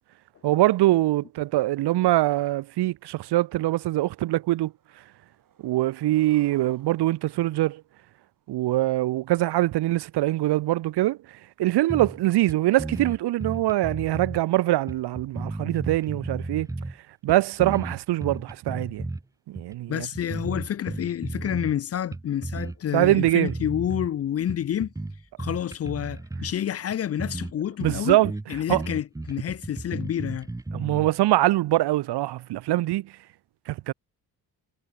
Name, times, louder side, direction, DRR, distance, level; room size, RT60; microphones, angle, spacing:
voice 1, 0.4-4.7 5.6-7.8 8.5-11.2 11.6-16.7 17.2-19.0 19.5-20.1 22.9-23.5 27.8-28.3 28.7-28.8 30.7-33.1 33.7-33.9, right 16 dB, 80° right, 1.0 m, -23 dB
Skateboard, 3.5-3.6 3.9-8.6, right 9 dB, 55° right, 7.0 m, -59 dB
sound 1, 11.9-12.2 12.5-12.6 12.8-14.4 14.9-17.0 17.3-19.2 19.6-19.7 20.1-21.8 22.1-22.8 23.0-24.1 24.5-26.6 26.9-27.0 27.2-27.5 27.8-31.1, right 2 dB, 10° right, 0.9 m, -34 dB
voice 2, 19.9-24.9 25.4-28.2 28.5-30.5, left 10 dB, 40° left, 0.5 m, -29 dB
cardioid pair, 125°, 40 cm